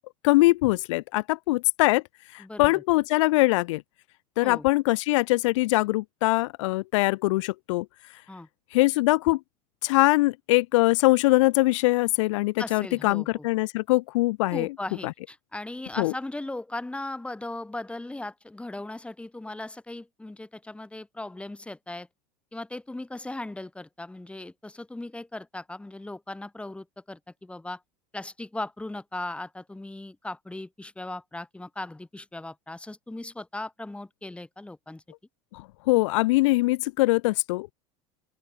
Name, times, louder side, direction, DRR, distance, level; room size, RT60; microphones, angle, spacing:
voice 1, 0.2-2.0 2.3-3.8 4.4-7.9 8.7-9.4 9.8-14.7 15.0-15.1 16.0-16.1 35.5-37.7, left 21 dB, 80° left, 0.6 m, -22 dB
voice 2, 2.4-2.8 4.4-4.7 8.3-8.5 12.6-13.5 14.5-22.1 22.5-27.8 28.1-35.0, left 2 dB, 5° left, 5.2 m, -38 dB
open air
supercardioid pair, 115°, 16 cm